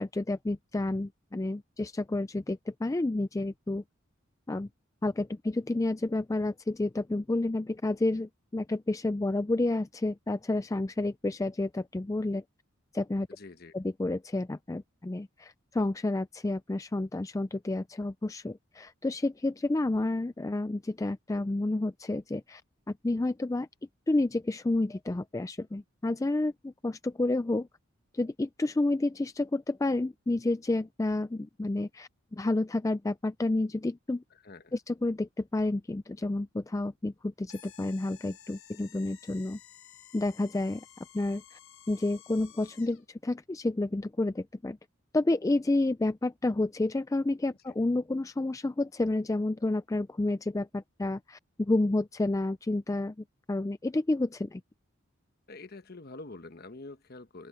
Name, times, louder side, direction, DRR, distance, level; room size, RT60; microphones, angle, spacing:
voice 1, 0.0-3.8 4.5-4.7 5.0-12.4 12.9-13.3 13.7-22.6 23.0-23.7 24.1-27.7 28.1-34.2 34.7-39.6 40.1-40.8 41.1-41.6 41.9-44.8 45.1-53.2 53.5-54.6, left 2 dB, 15° left, 0.3 m, -30 dB
voice 2, 13.3-13.7 34.3-34.8 55.5-57.5, left 2 dB, 50° left, 1.2 m, -46 dB
sound 1, 37.5-43.0, left 10 dB, 85° left, 3.6 m, -54 dB
open air
head